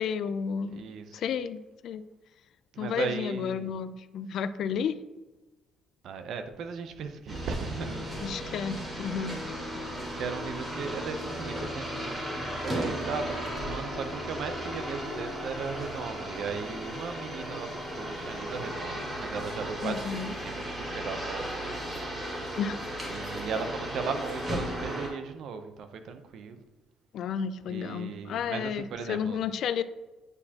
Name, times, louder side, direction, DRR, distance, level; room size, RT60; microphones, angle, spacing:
voice 1, 0.0-2.0 2.8-5.0 8.2-9.4 19.8-20.3 22.6-22.8 27.1-29.8, left 7 dB, 60° left, 14 dB, 0.3 m, -32 dB
voice 2, 0.7-1.2 2.7-3.7 6.0-8.4 10.1-21.7 23.1-26.6 27.7-29.5, right 5 dB, 60° right, 8 dB, 0.7 m, -37 dB
sound 1, 7.3-25.1, equal, 15° right, 2.0 m, -35 dB
9.5 x 4.3 x 2.8 m, 1.1 s
cardioid pair, 145°, 0 cm